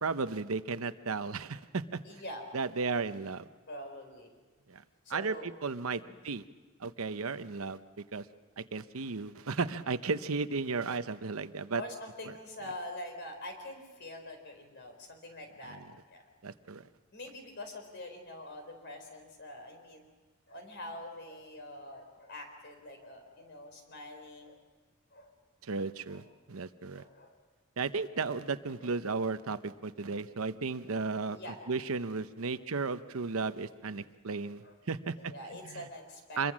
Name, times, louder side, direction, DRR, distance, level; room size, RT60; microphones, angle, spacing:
voice 1, 0.0-2.0 2.5-3.5 4.7-4.8 5.1-5.3 5.6-6.4 6.8-7.8 8.1-8.2 8.6-11.8 15.7-15.8 16.4-16.8 25.6-27.0 27.8-31.4 31.7-35.1 35.6-35.8 36.4-36.5, right 4 dB, 85° right, 12 dB, 0.8 m, -34 dB
voice 2, 2.0-2.5 3.7-4.3 5.0-5.5 5.9-6.2 9.4-9.5 11.7-16.2 17.1-20.1 20.5-24.6 25.1-25.4 26.1-26.3 26.9-27.4 28.1-28.2 28.8-29.3 30.0-30.2 30.8-31.8 32.4-32.6 33.3-33.5 34.6-34.7 35.1-36.5, left 1 dB, 55° left, 4 dB, 4.3 m, -45 dB
26.5 x 22.0 x 6.3 m, 1.3 s
head